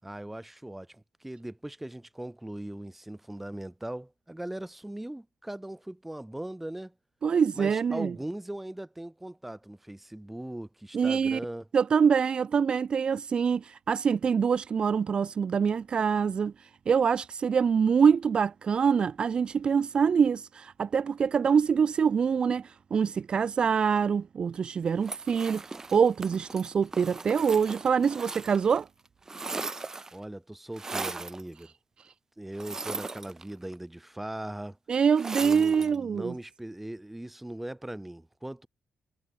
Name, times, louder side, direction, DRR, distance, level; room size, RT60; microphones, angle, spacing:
voice 1, 0.0-6.9 7.5-11.7 30.1-31.7 32.4-34.8 35.4-38.7, right 1 dB, 10° right, 5.8 m, -39 dB
voice 2, 7.2-8.1 10.9-11.4 11.7-25.6 25.9-28.9 34.9-36.3, right 6 dB, 45° right, 0.6 m, -25 dB
sound 1, 25.0-28.8 29.1-30.2 30.8-31.4 32.5-33.7 35.2-36.0, right 3 dB, 25° right, 1.6 m, -38 dB
cardioid pair, 105°, 2 cm